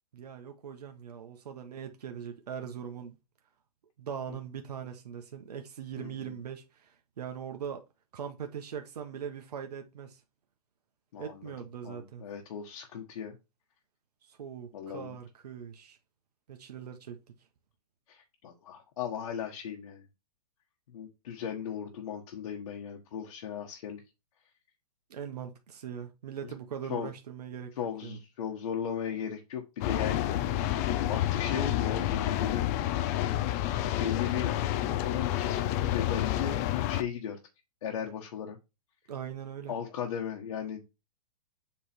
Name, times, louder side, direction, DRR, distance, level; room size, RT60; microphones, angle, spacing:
voice 1, 0.1-3.2 4.0-7.8 8.1-10.2 11.2-12.2 14.3-16.0 16.5-17.2 25.1-28.2 39.1-39.7, right 8 dB, 75° right, 1.2 m, -41 dB
voice 2, 5.9-6.3 11.1-11.5 11.8-13.4 14.7-15.1 18.1-20.1 20.9-24.0 26.4-26.5 26.9-27.1 27.8-30.7 31.1-32.8 33.8-37.4 37.8-38.6 39.7-40.8, left 8 dB, 60° left, 1.3 m, -37 dB
sound 1, 29.8-37.0, left 13 dB, 25° left, 0.4 m, -29 dB
7.4 x 3.2 x 4.4 m
hypercardioid pair, 150°, 20 cm